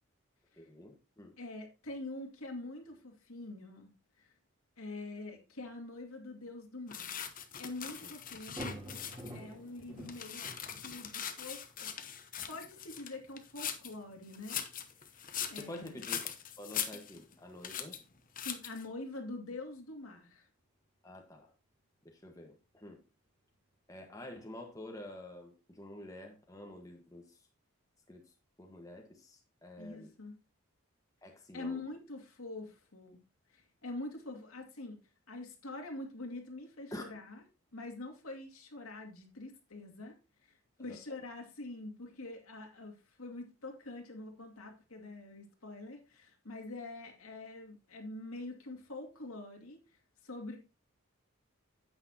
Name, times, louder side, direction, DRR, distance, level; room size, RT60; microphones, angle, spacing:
voice 1, 0.6-1.3 8.0-8.1 15.6-16.2 16.6-18.0 21.0-21.5 22.0-23.0 23.9-27.4 28.1-28.2 28.6-30.1 31.2-31.8 36.9-37.0 40.9-41.0, left 1 dB, 15° left, 1 dB, 1.4 m, -48 dB
voice 2, 1.4-3.9 4.2-4.3 4.8-7.3 7.6-8.8 9.3-10.4 10.8-11.9 12.5-14.6 15.0-15.2 15.5-16.0 18.4-20.5 29.8-30.4 31.5-33.2 33.5-35.0 35.3-37.4 37.7-40.1 40.4-50.6, left 2 dB, 75° left, 2 dB, 2.5 m, -45 dB
sound 1, 6.9-9.4 9.8-13.9 14.3-17.3 17.6-18.0 18.3-18.8, left 9 dB, 40° left, 0.9 m, -41 dB
sound 2, 8.1-11.2 12.4-12.5 24.5-24.6, right 1 dB, 25° right, 3.4 m, -47 dB
9.8 x 8.8 x 2.9 m, 0.29 s
head